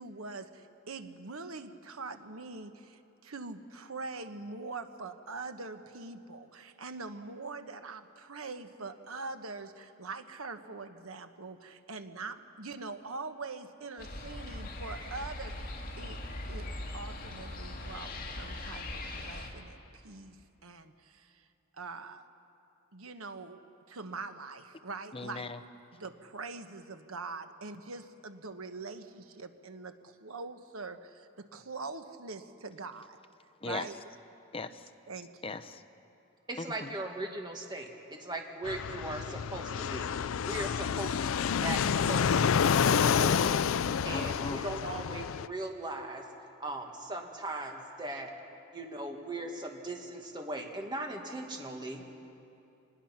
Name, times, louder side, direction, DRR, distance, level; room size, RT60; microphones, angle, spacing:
voice 1, 0.0-15.7 16.0-16.2 16.5-16.7 16.9-20.4 20.6-21.4 21.7-22.2 22.9-23.6 23.9-25.4 25.9-33.2 33.6-33.9 35.1-35.3, right 3 dB, 85° right, 8 dB, 1.2 m, -43 dB
sound 1, 14.0-19.5, left 1 dB, 45° left, 2.2 m, -40 dB
voice 2, 25.1-25.6 33.6-33.9 34.5-34.9 35.4-35.8 36.6-36.9 44.1-44.6, left 3 dB, 25° left, 9 dB, 0.8 m, -38 dB
voice 3, 36.5-42.4 42.8-43.6 44.0-46.3 46.6-48.3 48.7-52.1, right 1 dB, 20° right, 2 dB, 2.0 m, -39 dB
Fixed-wing aircraft airplane, 38.6-45.5, left 7 dB, 75° left, 0.4 m, -28 dB
25.5 x 20.5 x 5.9 m, 2.7 s
head